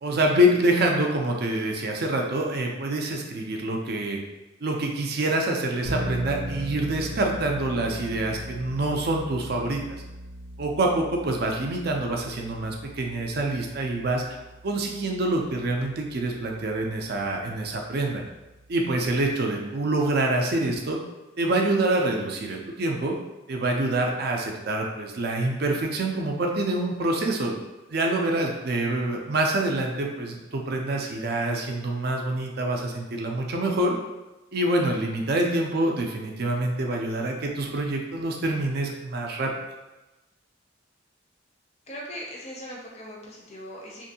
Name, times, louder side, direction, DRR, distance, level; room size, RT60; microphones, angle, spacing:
voice 1, 0.0-4.2 4.6-9.8 10.6-14.2 14.6-18.2 18.7-21.0 21.4-23.1 23.5-27.6 27.9-33.9 34.5-39.5, right 1 dB, 55° right, 1 dB, 0.4 m, -26 dB
sound 1, 5.8-19.3, equal, 85° right, 0.8 m, -39 dB
voice 2, 41.9-44.1, equal, 35° left, -2 dB, 0.5 m, -39 dB
2.6 x 2.5 x 2.7 m, 1.1 s
head